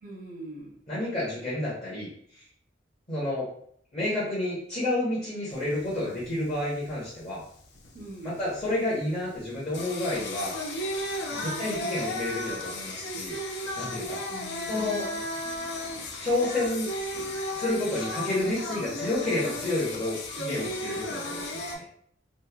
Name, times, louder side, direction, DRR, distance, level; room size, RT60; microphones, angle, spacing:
voice 1, 0.0-0.8 7.9-8.4 11.3-11.7 14.3-15.7, right 2 dB, 45° right, 0 dB, 0.5 m, -43 dB
voice 2, 0.9-2.1 3.1-3.5 3.9-7.4 8.2-10.5 11.3-13.4 13.8-14.2 14.7-15.1 16.2-16.9 17.5-21.8, left 2 dB, 35° left, -9 dB, 0.8 m, -30 dB
Singing, 5.5-21.8, left 1 dB, 65° left, 0.4 m, -35 dB
2.9 x 2.1 x 2.2 m, 0.62 s
head